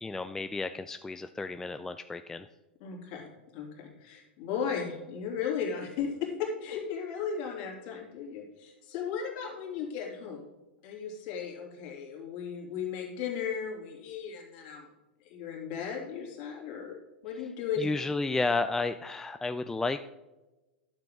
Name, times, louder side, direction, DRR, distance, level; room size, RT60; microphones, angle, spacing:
voice 1, 0.0-2.5 17.8-20.1, left 3 dB, 10° left, 9 dB, 0.3 m, -32 dB
voice 2, 2.8-10.4 10.8-14.9 15.2-17.0 17.2-17.9, left 7 dB, 50° left, 0 dB, 2.9 m, -36 dB
11.5 x 6.9 x 3.7 m, 1.1 s
figure-of-eight pair, 95°, 6 cm